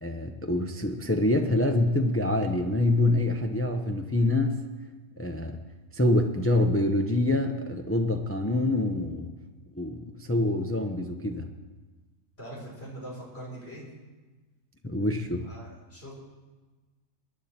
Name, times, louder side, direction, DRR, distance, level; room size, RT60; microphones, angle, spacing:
voice 1, 0.0-4.6 5.2-5.6 5.9-9.3 9.7-11.5 14.8-15.5, left 1 dB, 15° left, 4 dB, 0.5 m, -26 dB
voice 2, 12.4-13.9 15.4-16.1, right 1 dB, 45° left, -4 dB, 4.4 m, -42 dB
21.5 x 10.0 x 4.3 m, 1.3 s
omnidirectional pair, 1.4 m